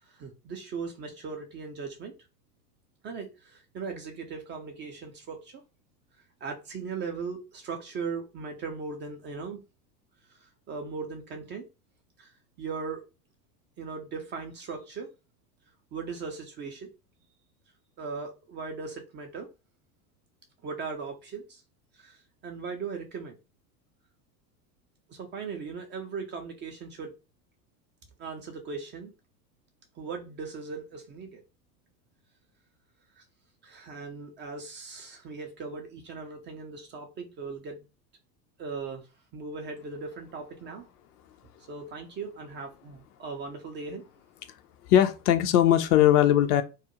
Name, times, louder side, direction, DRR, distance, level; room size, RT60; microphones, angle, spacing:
voice 1, 0.0-2.1 3.0-5.6 6.4-9.6 10.3-11.7 12.2-13.1 13.8-15.1 15.9-16.9 18.0-19.5 20.6-21.6 21.9-23.4 25.1-27.2 28.2-29.1 29.9-31.4 33.2-33.3 33.6-37.9 38.6-40.8 41.7-44.0, right 4 dB, 25° right, 0.3 m, -38 dB
voice 2, 44.9-46.6, left 11 dB, 65° left, 0.5 m, -20 dB
2.3 x 2.0 x 2.9 m
figure-of-eight pair, 70°, 50 cm